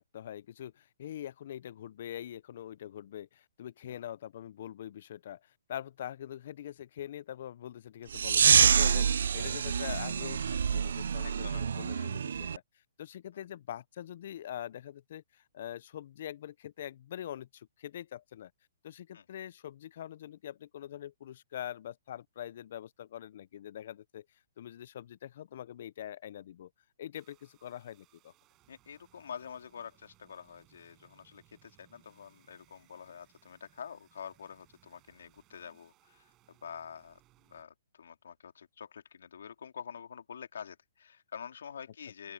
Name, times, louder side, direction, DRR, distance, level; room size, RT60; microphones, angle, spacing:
voice 1, 0.0-12.6 13.0-18.5 18.8-24.3 24.6-26.7 27.0-28.3, left 11 dB, 55° left, 0.4 m, -44 dB
sound 1, 8.1-12.6, right 7 dB, 75° right, 0.3 m, -26 dB
voice 2, 11.1-12.1 13.3-13.4 19.1-19.3 28.7-42.3, left 7 dB, 75° left, 2.8 m, -47 dB
sound 2, 27.1-37.6, right 17 dB, 25° right, 6.0 m, -67 dB
open air
hypercardioid pair, 150°, 0 cm